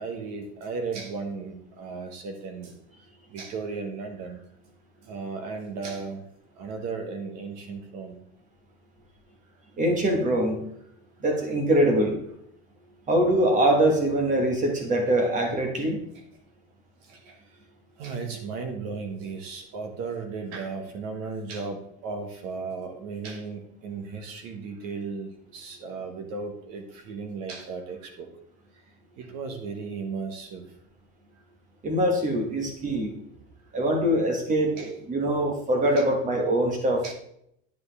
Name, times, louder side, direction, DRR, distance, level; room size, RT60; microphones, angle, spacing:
voice 1, 0.0-2.7 3.3-4.4 5.1-6.2 6.6-8.2 17.1-17.4 18.0-28.3 29.2-30.6 34.8-34.9 36.0-36.1 37.0-37.1, right 4 dB, 55° right, 5 dB, 1.5 m, -35 dB
voice 2, 9.8-10.6 11.2-12.2 13.1-16.0 31.8-33.2 33.7-37.1, right 1 dB, 25° right, 3 dB, 1.5 m, -23 dB
9.4 x 7.2 x 3.4 m, 0.73 s
cardioid pair, 160°, 32 cm